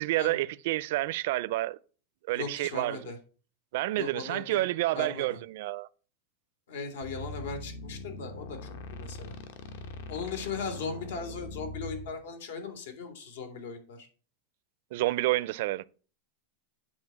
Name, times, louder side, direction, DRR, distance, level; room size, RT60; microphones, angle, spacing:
voice 1, 0.0-1.8 2.3-3.0 3.7-5.9 14.9-15.9, right 17 dB, 55° right, 0.4 m, -29 dB
voice 2, 2.3-3.2 4.0-4.6 4.9-5.4 6.7-9.3 10.1-14.1, left 4 dB, 80° left, 2.8 m, -38 dB
sound 1, 7.0-12.1, left 2 dB, 60° left, 1.2 m, -42 dB
8.8 x 4.2 x 7.3 m
supercardioid pair, 170°, 0 cm